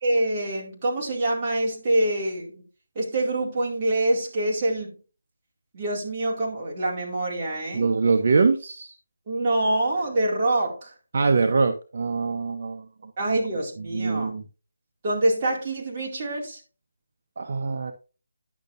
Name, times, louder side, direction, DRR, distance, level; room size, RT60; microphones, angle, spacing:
voice 1, 0.0-2.6 3.0-5.0 5.7-7.9 9.3-10.9 13.2-14.3 15.0-16.6, right 1 dB, 30° right, 2.2 m, -25 dB
voice 2, 7.7-8.9 11.1-13.4 13.9-14.4 17.4-17.9, right 4 dB, 55° right, 0.7 m, -23 dB
10.5 x 6.5 x 2.5 m
figure-of-eight pair, 165°, 0 cm